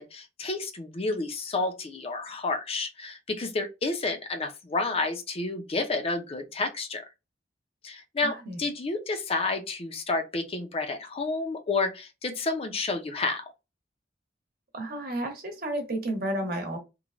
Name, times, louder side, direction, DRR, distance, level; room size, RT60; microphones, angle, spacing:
voice 1, 0.0-7.1 7.8-13.4, left 3 dB, 35° left, 0.5 m, -30 dB
voice 2, 8.2-8.6 14.7-16.8, right 1 dB, 55° right, 0.9 m, -32 dB
3.0 x 2.2 x 2.4 m
head